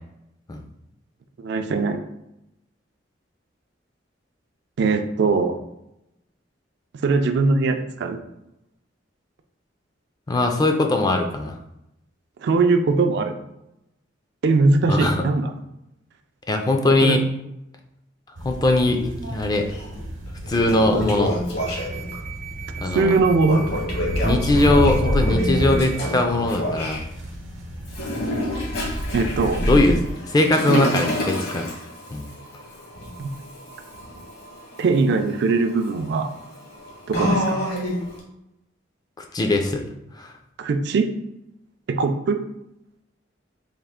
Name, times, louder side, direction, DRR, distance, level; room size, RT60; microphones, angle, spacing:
voice 1, 1.4-2.0 4.8-5.6 6.9-8.2 12.4-13.4 14.4-15.5 17.0-17.2 22.9-23.6 29.1-29.7 30.7-30.9 33.2-33.3 34.8-36.3 37.1-37.6 40.6-41.1 41.9-42.4, right 3 dB, 65° right, 7 dB, 0.3 m, -21 dB
voice 2, 10.3-11.6 14.9-15.2 16.5-17.2 18.4-19.7 20.5-21.4 22.8-23.2 24.2-27.0 29.6-30.0 30.3-31.7 32.1-32.3 39.3-39.8 40.2-40.3, left 2 dB, 20° left, 4 dB, 0.3 m, -20 dB
sound 1, 18.4-30.0, right 1 dB, 80° right, 0.8 m, -29 dB
Toilet flush, 19.7-19.8 20.3-22.2 23.4-27.0 27.9-38.2, left 1 dB, 60° left, 1.1 m, -29 dB
3.5 x 2.4 x 3.5 m, 0.86 s
head